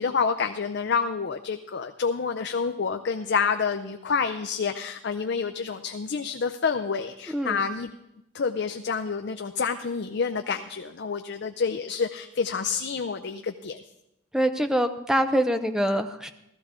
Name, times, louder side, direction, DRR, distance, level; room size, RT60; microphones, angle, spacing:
voice 1, 0.0-7.9 8.3-13.8, left 5 dB, 55° left, 7 dB, 0.5 m, -28 dB
voice 2, 14.3-16.3, equal, 5° right, 8 dB, 0.6 m, -24 dB
15.0 x 13.5 x 3.7 m, 0.85 s
head